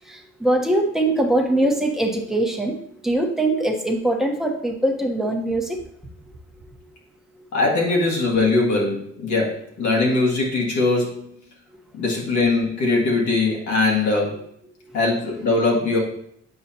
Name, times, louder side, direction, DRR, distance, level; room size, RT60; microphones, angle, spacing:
voice 1, 0.0-5.8 14.8-15.0 15.4-15.5, right 1 dB, ahead, 1 dB, 1.1 m, -22 dB
voice 2, 7.5-11.3 11.9-14.4 14.9-16.0, left 3 dB, 70° left, -3 dB, 1.9 m, -21 dB
7.8 x 4.8 x 2.9 m, 0.70 s
cardioid pair, 90°, 30 cm